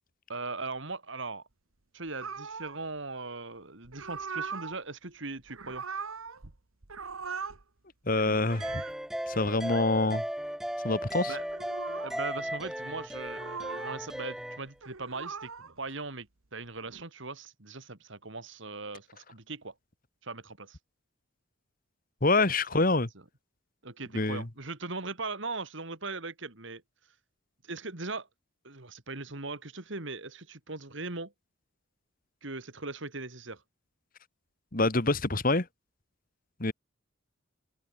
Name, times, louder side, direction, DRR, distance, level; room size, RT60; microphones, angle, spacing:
voice 1, 0.3-1.4 1.9-5.8 11.3-11.5 12.0-19.7 20.2-20.8 22.7-22.8 23.8-26.8 27.6-28.3 28.6-31.3 32.4-33.6, right 3 dB, 60° right, 2.5 m, -39 dB
sound 1, 2.2-2.8 3.8-4.8 5.4-6.6 6.8-7.6 8.1-9.0 9.6-9.9 11.4-12.2 13.2-14.0 14.7-15.8 16.6-17.0, right 5 dB, 80° right, 1.6 m, -40 dB
voice 2, 8.1-8.8 9.3-10.2 10.8-11.4 22.2-23.1 24.1-24.5 34.7-35.7 36.6-36.7, left 2 dB, 40° left, 1.7 m, -26 dB
sound 2, 8.5-14.6, equal, ahead, 0.7 m, -36 dB
head